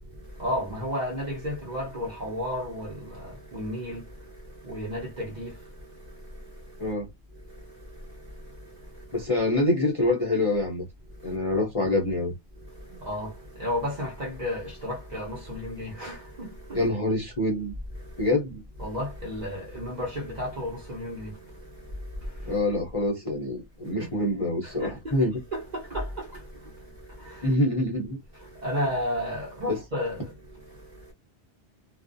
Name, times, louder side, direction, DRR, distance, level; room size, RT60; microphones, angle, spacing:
voice 1, 0.1-6.9 7.3-9.3 11.1-11.4 12.6-16.8 17.9-18.3 18.8-22.6 23.8-24.1 24.6-25.2 25.5-27.5 28.3-31.1, equal, 40° right, 1.0 m, -34 dB
voice 2, 9.1-10.9 11.2-12.4 16.7-17.7 18.2-18.6 22.5-25.3 27.4-28.2 29.7-29.8, left 2 dB, 35° left, 0.6 m, -26 dB
2.4 x 2.0 x 2.5 m
omnidirectional pair, 1.2 m